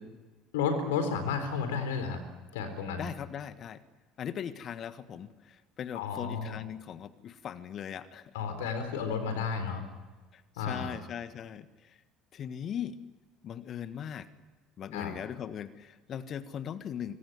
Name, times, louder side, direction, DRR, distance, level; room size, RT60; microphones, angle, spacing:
voice 1, 0.5-2.2 2.5-3.1 5.9-6.6 8.3-9.8 10.6-10.9 14.9-15.1, left 5 dB, 65° left, 8 dB, 4.1 m, -32 dB
voice 2, 3.0-3.8 4.2-8.3 10.3-11.9 12.3-13.0 13.4-14.3 14.8-17.2, left 9 dB, 40° left, 13 dB, 1.6 m, -39 dB
25.5 x 24.0 x 9.8 m, 1.2 s
figure-of-eight pair, 65°, 0 cm